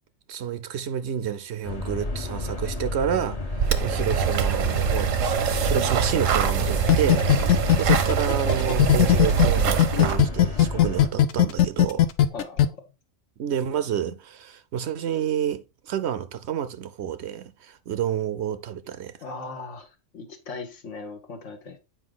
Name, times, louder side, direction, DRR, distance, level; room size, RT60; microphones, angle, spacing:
voice 1, 0.3-7.3 7.8-12.1 13.4-19.1, right 9 dB, 65° right, 0.8 m, -29 dB
sound 1, 1.6-11.1, left 2 dB, 30° left, 1.0 m, -31 dB
sound 2, 3.6-10.2, right 7 dB, 85° right, 1.2 m, -24 dB
sound 3, 6.9-9.5 9.8-12.6, left 12 dB, 90° left, 1.0 m, -17 dB
voice 2, 12.3-12.8 19.2-21.8, left 4 dB, 70° left, 1.6 m, -38 dB
8.3 x 5.0 x 3.8 m
omnidirectional pair, 1.3 m